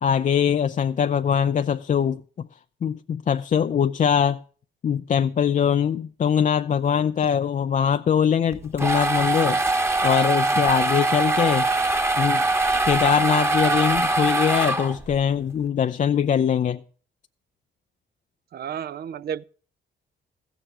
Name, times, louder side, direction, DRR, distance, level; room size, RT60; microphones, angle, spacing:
voice 1, 0.0-2.5 2.8-4.4 4.8-9.6 10.0-11.7 12.2-12.4 12.9-16.8, left 8 dB, 40° left, 0.5 m, -22 dB
sound 1, 8.5-15.2, right 2 dB, 15° right, 1.2 m, -22 dB
voice 2, 18.5-19.4, right 8 dB, 50° right, 0.5 m, -32 dB
15.0 x 7.1 x 7.3 m
cardioid pair, 90°, 20 cm